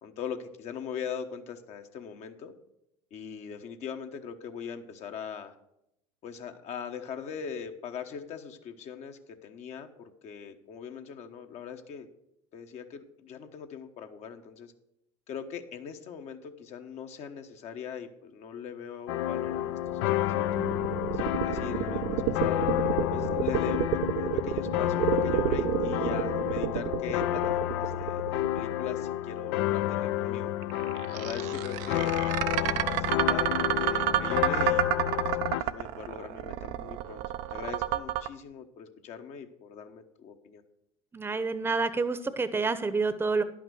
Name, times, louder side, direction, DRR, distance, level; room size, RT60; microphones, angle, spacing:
voice 1, 0.0-2.5 3.1-5.6 6.2-12.1 12.5-14.7 15.3-20.5 21.1-22.7 23.1-23.9 24.2-30.5 31.1-32.1 32.5-37.2 37.5-40.6, left 7 dB, 55° left, 6 dB, 1.1 m, -41 dB
sound 1, 19.1-35.6, left 14 dB, 70° left, 0.5 m, -30 dB
sound 2, 19.4-29.3 30.6-38.3, right 12 dB, 65° right, 0.6 m, -30 dB
voice 2, 41.1-43.4, right 4 dB, 15° right, 12 dB, 0.8 m, -28 dB
11.0 x 5.8 x 6.3 m, 0.81 s
hypercardioid pair, 75°, 14 cm